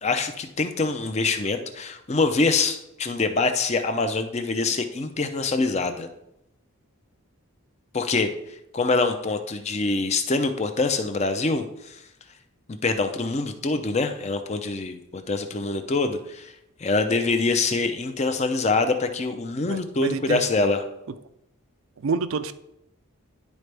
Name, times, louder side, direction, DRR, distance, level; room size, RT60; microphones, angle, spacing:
voice 1, 0.0-6.1 7.9-8.3 8.7-12.0 12.7-16.5 16.8-20.8, left 3 dB, 30° left, 8 dB, 0.5 m, -25 dB
voice 2, 19.6-20.4 22.0-22.5, right 4 dB, 65° right, 13 dB, 0.4 m, -27 dB
11.0 x 4.2 x 3.3 m, 0.84 s
head